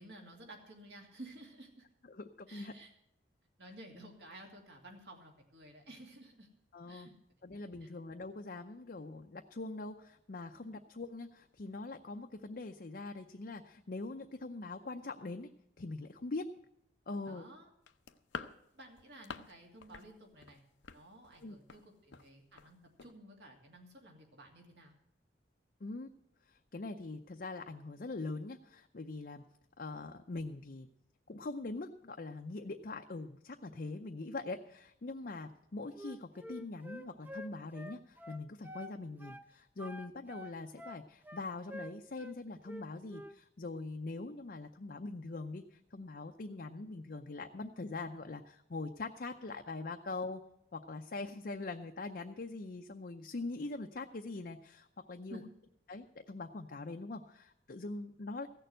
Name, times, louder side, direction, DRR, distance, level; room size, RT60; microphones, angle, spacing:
voice 1, 0.0-1.9 2.5-2.9 3.6-6.5 6.9-7.1 7.8-7.9 17.3-17.7 18.7-20.6 20.9-24.9 55.3-55.4, right 1 dB, 65° right, 1 dB, 2.5 m, -53 dB
voice 2, 2.1-2.7 6.7-7.1 7.4-15.5 15.8-16.5 17.1-17.5 21.4-21.6 25.8-26.1 26.5-29.4 29.8-30.9 31.3-50.4 50.7-55.4 55.9-58.5, left 3 dB, 50° left, 4 dB, 0.6 m, -43 dB
sound 1, 17.9-19.6 19.8-20.1 20.4-21.8 22.1-22.3 22.6-22.7 23.0-23.1, left 5 dB, 85° left, 0.7 m, -47 dB
Wind instrument woodwind instrument, 35.9-38.9 39.2-39.5 39.8-42.4 42.6-43.4, left 1 dB, 10° right, 0.6 m, -48 dB
15.5 x 6.8 x 7.7 m, 0.79 s
head